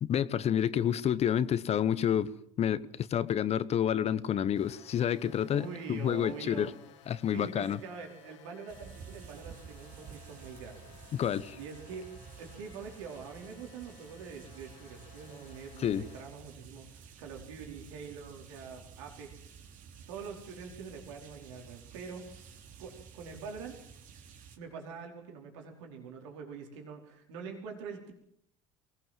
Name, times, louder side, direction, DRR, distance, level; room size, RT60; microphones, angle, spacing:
voice 1, 0.0-6.7 7.1-7.8 11.1-11.6 15.8-16.0, left 9 dB, 45° left, 1.1 m, -29 dB
sound 1, 4.6-16.2, left 8 dB, 80° left, 2.2 m, -57 dB
voice 2, 5.5-7.0 7.3-10.9 11.6-12.1 12.4-19.5 20.1-23.8 24.6-28.1, right 5 dB, 80° right, 4.7 m, -45 dB
sound 2, 8.7-24.6, right 7 dB, 60° right, 3.2 m, -52 dB
23.0 x 18.0 x 7.6 m
hypercardioid pair, 75°, 15 cm